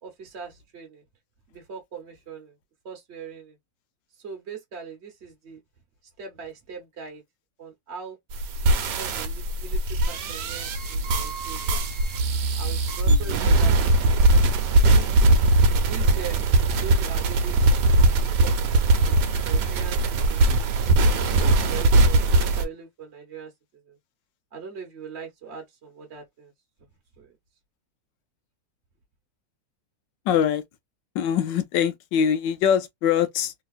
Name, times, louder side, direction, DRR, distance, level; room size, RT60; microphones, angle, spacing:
voice 1, 0.0-1.0 1.5-2.5 2.8-3.6 4.1-5.6 6.2-7.2 7.6-8.2 8.6-11.8 12.6-15.1 15.9-17.8 18.4-20.7 21.3-23.5 23.8-24.0 24.5-26.5 27.2-27.3, right 6 dB, 45° right, 1.1 m, -41 dB
sound 1, 8.3-22.6, right 2 dB, 70° right, 1.4 m, -20 dB
voice 2, 13.0-13.5 30.3-30.6 31.1-33.5, left 8 dB, 85° left, 1.4 m, -23 dB
3.4 x 2.9 x 2.3 m
omnidirectional pair, 1.9 m